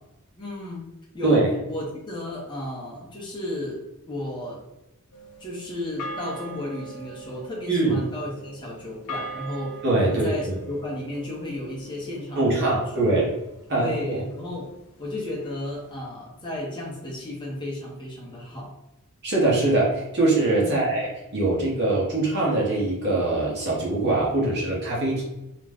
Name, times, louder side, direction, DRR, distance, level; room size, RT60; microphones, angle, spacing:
voice 1, 0.4-0.9 1.1-4.6 5.4-13.2 13.8-14.7 15.0-18.7 20.6-20.9, left 1 dB, 20° left, -3 dB, 0.6 m, -34 dB
sound 1, 5.1-13.6, right 2 dB, 80° left, 0.4 m, -41 dB
voice 2, 7.7-8.0 9.8-10.5 12.4-13.3 13.7-14.2 19.2-25.2, right 2 dB, 50° right, -4 dB, 0.8 m, -22 dB
2.4 x 2.1 x 3.3 m, 0.93 s
head